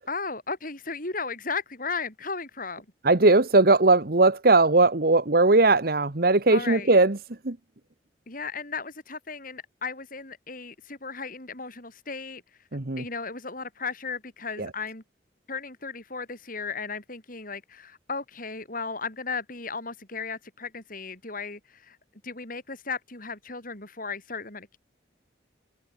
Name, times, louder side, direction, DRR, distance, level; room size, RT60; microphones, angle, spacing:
voice 1, 0.1-2.8 6.5-6.9 8.3-12.4 13.0-15.0 15.5-22.0 22.2-24.8, left 4 dB, 50° left, 5.8 m, -35 dB
voice 2, 3.0-7.2 7.4-7.6 12.7-13.0 14.6-14.7, right 3 dB, 55° right, 1.3 m, -19 dB
head